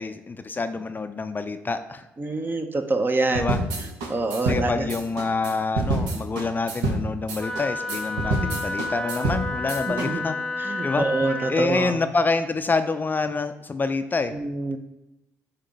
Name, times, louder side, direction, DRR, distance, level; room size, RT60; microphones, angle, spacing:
voice 1, 0.0-2.1 3.3-3.6 4.4-10.4 10.8-11.1 11.5-14.3, left 4 dB, 30° left, 9 dB, 0.4 m, -27 dB
voice 2, 2.2-3.5 4.1-4.9 9.9-10.2 10.6-11.9 14.3-14.8, right 2 dB, 30° right, 7 dB, 0.7 m, -26 dB
sound 1, 3.4-10.1, right 2 dB, 80° right, 1.0 m, -28 dB
Wind instrument woodwind instrument, 7.4-11.6, left 3 dB, 10° left, 0.8 m, -30 dB
6.6 x 3.0 x 5.2 m, 0.94 s
supercardioid pair, 60°, 7 cm